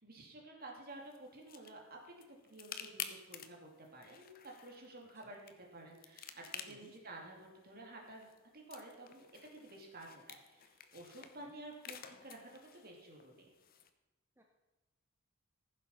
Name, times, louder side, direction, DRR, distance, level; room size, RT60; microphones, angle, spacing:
voice 1, 0.0-2.1 2.4-5.4 5.7-9.3 9.5-10.6 10.9-13.5, right 2 dB, 45° right, 0 dB, 2.6 m, -52 dB
sound 1, 0.9-13.9, left 8 dB, 45° left, 0.8 m, -52 dB
voice 2, 11.2-11.5 14.4-14.5, right 1 dB, 10° right, 1 dB, 0.8 m, -63 dB
15.0 x 7.3 x 5.5 m, 1.1 s
head